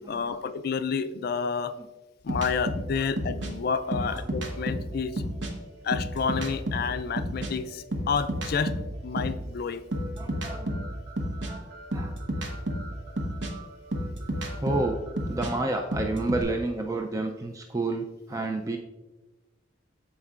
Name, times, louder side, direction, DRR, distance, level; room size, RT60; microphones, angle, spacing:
voice 1, 0.0-1.9 2.2-5.2 5.8-8.7 9.0-9.9, left 6 dB, 55° left, 12 dB, 0.4 m, -30 dB
sound 1, 2.3-5.5 5.9-9.5 9.9-16.4, equal, 70° right, 1.1 m, -32 dB
voice 2, 10.2-10.9 11.4-12.2 14.6-15.0 15.3-18.8, right 2 dB, 20° right, 3 dB, 0.4 m, -30 dB
13.0 x 4.5 x 2.4 m, 1.1 s
head